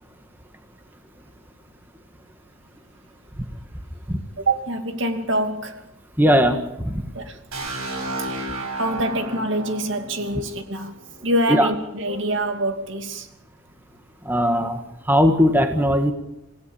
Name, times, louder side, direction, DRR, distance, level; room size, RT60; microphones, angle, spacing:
voice 1, 4.4-5.9 7.1-7.4 8.1-10.9 11.2-13.3, right 1 dB, 60° right, 6 dB, 2.7 m, -25 dB
voice 2, 6.2-7.0 11.5-11.7 14.2-14.8 15.1-16.1, equal, 10° right, 6 dB, 1.6 m, -18 dB
sound 1, 7.5-11.3, right 2 dB, 85° right, 7.5 m, -32 dB
28.0 x 16.5 x 7.2 m, 0.89 s
head